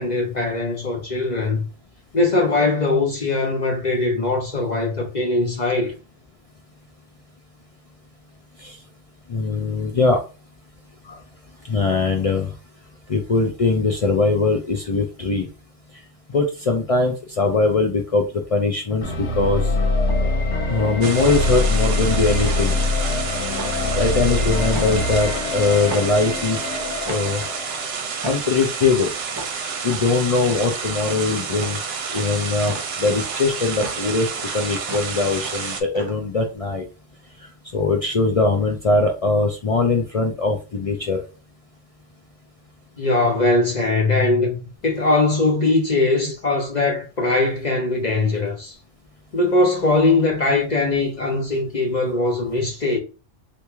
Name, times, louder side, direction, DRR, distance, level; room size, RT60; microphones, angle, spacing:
voice 1, 0.0-1.6 2.1-5.9 11.0-11.2 43.0-48.7 49.3-53.0, left 2 dB, 45° left, 0.7 m, -21 dB
voice 2, 9.3-10.2 11.7-12.5 13.1-15.5 16.3-18.3 18.5-19.7 20.7-22.8 24.0-26.6 27.1-27.4 28.2-29.1 29.8-31.8 32.1-34.3 34.5-36.9 37.7-41.2, left 3 dB, 65° left, 0.3 m, -21 dB
sound 1, 18.0-36.5, right 2 dB, 30° right, 0.6 m, -37 dB
sound 2, 19.0-28.1, left 2 dB, 80° left, 1.2 m, -24 dB
sound 3, 21.0-35.8, right 6 dB, 60° right, 0.8 m, -29 dB
3.0 x 2.5 x 3.4 m
omnidirectional pair, 1.3 m